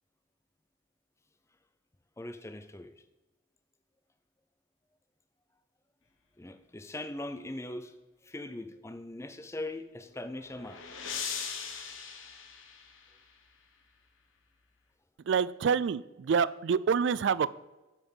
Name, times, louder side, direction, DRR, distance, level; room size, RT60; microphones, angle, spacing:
voice 1, 2.2-2.9 6.4-7.9 8.2-10.8, left 1 dB, 15° left, 9 dB, 0.5 m, -40 dB
sound 1, 10.0-13.4, left 6 dB, 80° left, 1.1 m, -40 dB
voice 2, 15.3-17.5, right 6 dB, 60° right, 18 dB, 0.3 m, -27 dB
7.2 x 5.8 x 7.2 m, 1.1 s
head